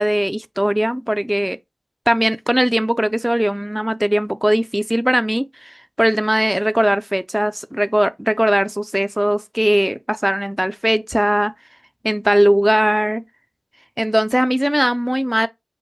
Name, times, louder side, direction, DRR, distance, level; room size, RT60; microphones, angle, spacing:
voice 1, 0.0-1.6 2.1-11.5 12.0-13.2 14.0-15.5, equal, 10° right, 0.4 m, -19 dB
5.3 x 2.0 x 4.6 m
wide cardioid pair, 55°, 0 cm